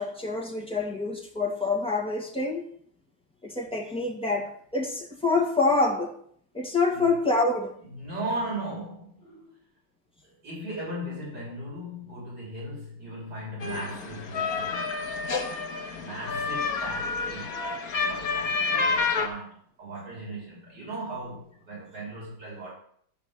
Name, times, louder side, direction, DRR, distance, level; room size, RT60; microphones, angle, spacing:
voice 1, 0.0-2.6 3.4-6.1 6.5-7.7, left 3 dB, 5° left, -1 dB, 1.8 m, -26 dB
voice 2, 7.9-9.5 10.2-14.9 15.9-22.7, right 1 dB, 50° right, -6 dB, 7.4 m, -37 dB
sound 1, 13.6-19.3, left 4 dB, 45° left, 1.5 m, -29 dB
12.5 x 5.8 x 7.8 m, 0.63 s
omnidirectional pair, 2.3 m